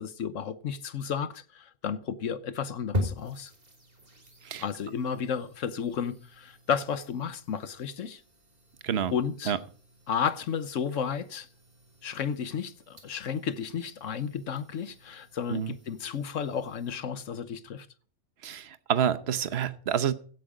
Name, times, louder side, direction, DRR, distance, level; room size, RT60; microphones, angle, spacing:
voice 1, 0.0-3.5 4.6-8.2 9.1-9.6 10.1-11.5 12.0-17.9, left 7 dB, 65° left, 1.2 m, -32 dB
sound 1, 2.9-16.9, left 1 dB, 30° right, 3.4 m, -42 dB
voice 2, 18.4-20.1, right 8 dB, 50° right, 1.1 m, -28 dB
16.5 x 8.8 x 5.0 m
omnidirectional pair, 1.5 m